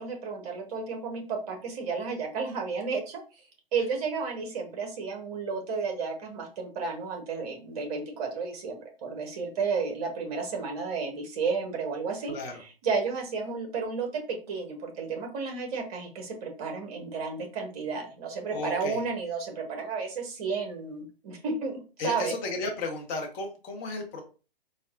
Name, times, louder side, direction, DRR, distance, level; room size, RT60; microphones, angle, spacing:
voice 1, 0.0-3.2 3.7-22.4, right 5 dB, 40° right, 3 dB, 1.0 m, -32 dB
voice 2, 18.5-19.0 22.0-24.2, left 3 dB, 25° left, 2 dB, 0.6 m, -34 dB
4.0 x 2.1 x 2.3 m, 0.34 s
figure-of-eight pair, 120°, 30 cm